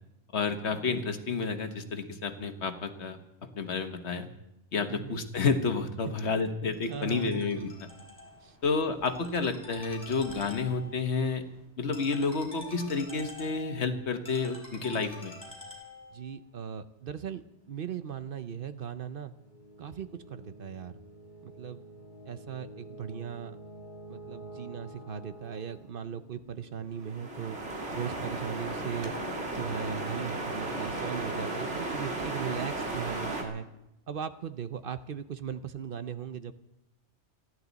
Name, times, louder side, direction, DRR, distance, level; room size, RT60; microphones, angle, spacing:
voice 1, 0.3-3.2 3.5-4.3 4.7-7.7 8.6-11.4 11.8-15.3, left 4 dB, 70° left, 8 dB, 1.5 m, -30 dB
voice 2, 4.9-5.2 6.9-7.7 8.4-8.6 16.1-19.3 19.8-21.0 21.4-21.8 22.2-23.6 24.1-27.6 27.9-29.1 29.5-33.7 34.1-36.5, right 8 dB, 55° right, 11 dB, 0.8 m, -38 dB
Ringtone, 6.7-16.3, left 2 dB, 15° right, 4.9 m, -48 dB
sound 1, 17.4-32.2, equal, 45° left, 1.4 m, -49 dB
sound 2, 27.0-33.4, right 2 dB, 75° right, 2.5 m, -35 dB
29.0 x 11.0 x 4.0 m, 0.88 s
omnidirectional pair, 1.2 m